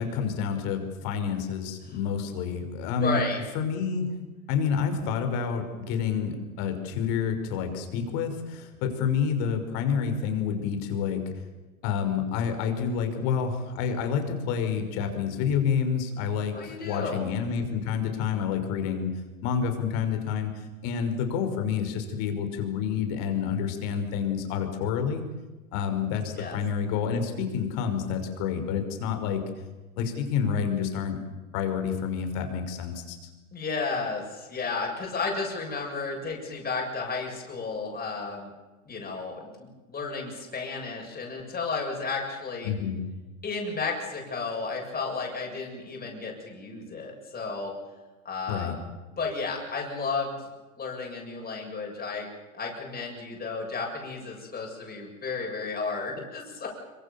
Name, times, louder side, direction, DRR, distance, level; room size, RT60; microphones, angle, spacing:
voice 1, 0.0-3.2 3.5-4.1 4.5-11.2 11.8-19.1 19.4-20.5 20.8-25.2 25.7-29.4 30.0-31.2 31.5-33.2 42.6-43.0 48.5-48.7, left 7 dB, 55° left, 6 dB, 5.7 m, -28 dB
voice 2, 3.0-3.4 16.5-17.3 26.4-26.6 33.5-38.5 38.9-42.7 43.4-47.7 48.2-48.8 49.2-50.4 50.8-52.3 52.5-56.8, left 4 dB, 20° left, -1 dB, 7.5 m, -33 dB
25.5 x 25.0 x 7.1 m, 1.2 s
hypercardioid pair, 110°, 43 cm